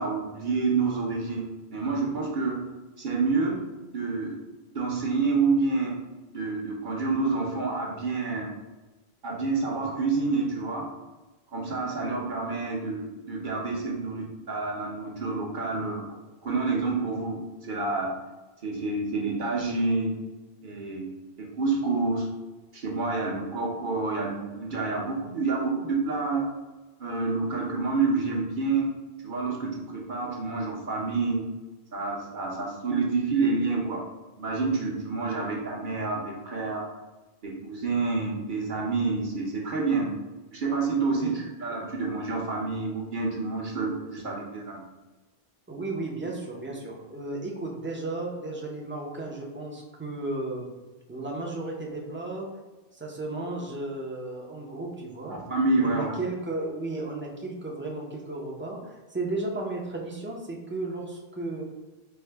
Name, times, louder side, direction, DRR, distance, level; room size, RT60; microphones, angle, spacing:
voice 1, 0.0-2.6 3.0-3.6 3.9-4.4 4.7-6.0 6.3-8.5 9.2-10.9 11.5-16.2 16.4-18.1 18.6-20.1 20.6-21.1 21.4-22.3 22.7-26.4 27.0-28.9 29.2-31.5 31.9-34.0 34.4-36.9 37.4-40.2 40.5-44.8 55.3-56.1, right 3 dB, 55° right, -3 dB, 0.8 m, -28 dB
voice 2, 45.7-50.7 51.1-52.5 52.9-55.4 55.8-61.6, right 2 dB, 15° right, -2 dB, 0.4 m, -34 dB
4.5 x 2.1 x 3.3 m, 1.2 s
omnidirectional pair, 1.1 m